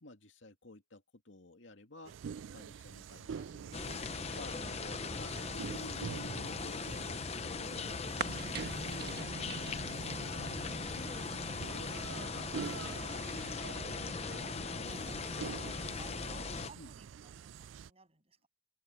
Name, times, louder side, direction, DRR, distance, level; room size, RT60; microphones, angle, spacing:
voice 1, 0.0-4.7 5.2-11.0 11.3-12.5 13.1-13.6 14.4-15.6 16.7-16.9, left 2 dB, 70° left, 2.3 m, -53 dB
sound 1, 2.0-17.9, right 7 dB, 75° right, 0.4 m, -47 dB
sound 2, 3.7-16.7, left 4 dB, 30° left, 0.6 m, -39 dB
sound 3, 8.2-16.2, right 3 dB, 55° right, 1.8 m, -46 dB
voice 2, 14.3-15.7 16.0-18.5, right 3 dB, 30° right, 7.4 m, -58 dB
head